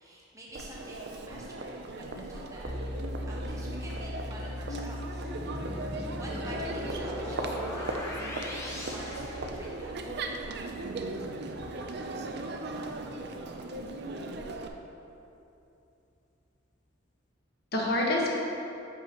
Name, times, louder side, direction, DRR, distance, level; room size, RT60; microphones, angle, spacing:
voice 1, 0.0-3.0 3.3-8.2 8.5-10.0, right 1 dB, 15° right, -5 dB, 0.8 m, -48 dB
Crowd, 0.6-14.7, right 2 dB, 55° right, 0.5 m, -38 dB
sound 1, 2.6-13.5, left 1 dB, 40° left, 0.5 m, -42 dB
voice 2, 5.2-6.1 17.7-18.3, left 1 dB, 55° left, -2 dB, 1.2 m, -31 dB
sound 2, 5.4-10.1, left 1 dB, 15° left, 0.9 m, -40 dB
10.5 x 5.7 x 3.0 m, 2.9 s
head